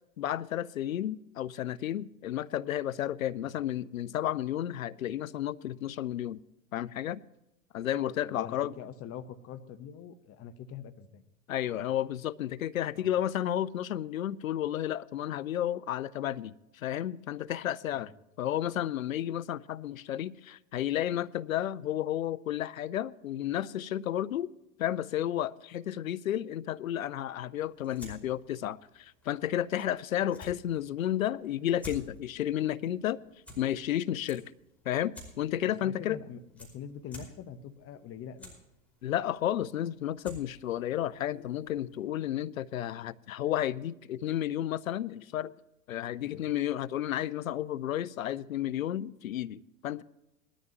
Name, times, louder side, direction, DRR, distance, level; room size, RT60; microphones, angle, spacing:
voice 1, 0.2-6.4 6.7-7.2 7.7-8.7 11.5-18.1 18.4-24.5 24.8-33.2 33.6-34.4 34.9-36.2 39.0-45.5 45.9-50.0, left 11 dB, 85° left, 0.6 m, -32 dB
voice 2, 8.2-11.2 12.9-13.1 17.9-18.1 35.8-38.5 46.2-46.4, left 8 dB, 35° left, 1.2 m, -44 dB
sound 1, 27.6-42.0, left 1 dB, 5° left, 5.1 m, -53 dB
20.0 x 12.5 x 3.0 m
hypercardioid pair, 90°, 40 cm